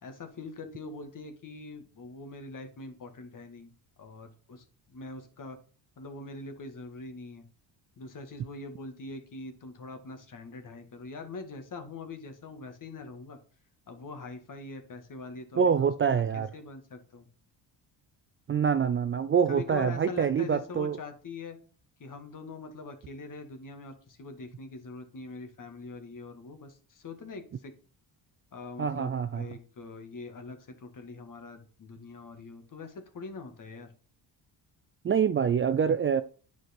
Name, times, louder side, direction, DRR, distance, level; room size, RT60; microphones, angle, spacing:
voice 1, 0.0-3.7 4.0-5.6 6.0-7.4 8.0-13.4 13.9-17.3 19.5-21.6 22.0-27.7 28.5-33.9, left 3 dB, 45° left, 1.9 m, -43 dB
voice 2, 15.6-16.5 18.5-21.0 28.8-29.5 35.0-36.2, right 7 dB, 30° right, 0.4 m, -25 dB
9.2 x 4.7 x 4.4 m
cardioid pair, 100°, 45 cm